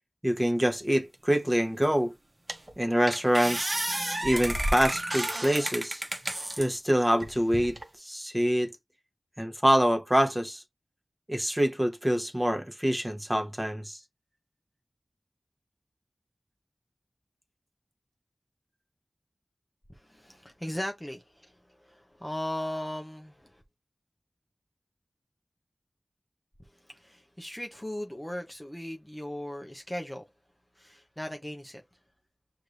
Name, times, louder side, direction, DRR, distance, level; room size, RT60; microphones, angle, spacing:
voice 1, 0.2-2.1 2.8-3.8 4.2-6.0 6.6-8.7 9.4-10.6 11.3-14.0, equal, 10° right, 1.1 m, -26 dB
sound 1, 1.8-1.9 2.5-2.7 3.1-6.7 7.2-7.9, right 1 dB, 35° right, 1.0 m, -31 dB
voice 2, 19.9-23.6 26.7-30.2 30.7-31.8, left 1 dB, 15° left, 0.8 m, -38 dB
6.4 x 2.6 x 3.2 m
wide cardioid pair, 55°, 0 cm